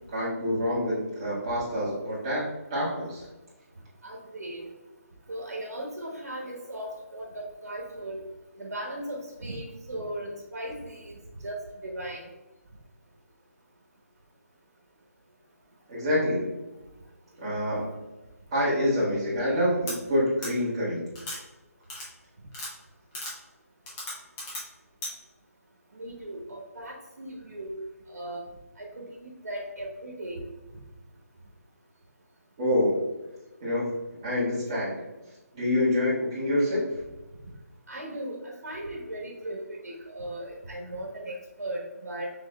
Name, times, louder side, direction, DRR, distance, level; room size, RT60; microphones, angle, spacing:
voice 1, 0.1-3.3 15.9-16.5 17.4-18.0 18.5-21.1 32.6-33.0 33.6-33.9 34.2-35.0 35.5-36.8, left 1 dB, 20° right, -8 dB, 1.5 m, -26 dB
voice 2, 4.0-4.7 5.3-8.2 8.6-11.1 11.4-12.3 25.9-27.8 28.1-28.4 28.8-30.4 37.9-42.3, right 1 dB, 85° right, -2 dB, 1.1 m, -37 dB
sound 1, 19.9-20.0 20.4-20.5 21.2-21.4 21.9-22.1 22.5-22.7 23.1-23.3 23.9-24.6 25.0-25.1, left 1 dB, 5° left, 0.5 m, -35 dB
6.0 x 3.8 x 2.2 m, 1.1 s
hypercardioid pair, 175°, 9 cm